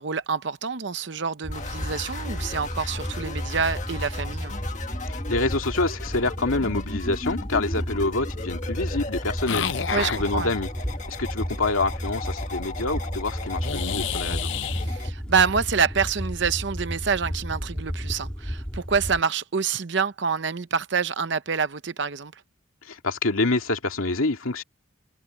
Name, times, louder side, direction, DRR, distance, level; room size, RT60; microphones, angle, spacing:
voice 1, 0.0-4.6 9.9-10.5 14.8-22.3, right 6 dB, 55° right, 0.7 m, -27 dB
sound 1, 1.4-19.2, equal, 5° left, 3.7 m, -33 dB
sound 2, 1.5-15.1, left 3 dB, 35° left, 1.7 m, -37 dB
voice 2, 5.1-10.7 11.1-14.5 22.8-24.6, left 2 dB, 90° left, 2.4 m, -27 dB
sound 3, 9.5-10.2 13.6-14.9, left 8 dB, 60° left, 0.6 m, -29 dB
head